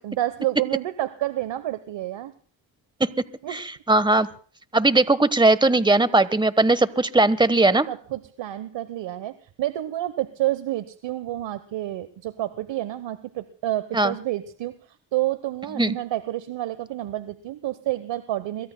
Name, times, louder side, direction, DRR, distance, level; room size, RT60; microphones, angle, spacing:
voice 1, 0.0-2.3 3.4-3.7 7.9-14.8 15.1-18.7, right 14 dB, 70° right, 13 dB, 1.1 m, -29 dB
voice 2, 3.5-4.3 4.7-7.9 13.9-14.1 15.8-15.9, right 2 dB, 10° right, 15 dB, 1.2 m, -19 dB
27.0 x 23.0 x 2.2 m, 0.41 s
cardioid pair, 65°, 46 cm